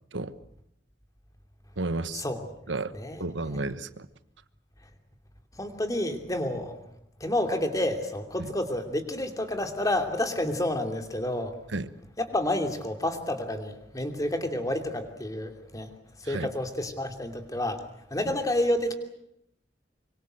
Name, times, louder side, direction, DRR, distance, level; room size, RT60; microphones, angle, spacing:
voice 1, 1.8-2.2 2.7-2.9 3.2-4.1 8.4-8.5 11.7-11.9 16.2-16.5, right 2 dB, 80° right, 14 dB, 1.2 m, -32 dB
voice 2, 5.6-6.8 7.2-11.5 12.2-15.9 16.2-17.8 18.1-18.9, left 1 dB, 20° left, 6 dB, 2.9 m, -29 dB
25.0 x 24.0 x 7.9 m, 0.78 s
head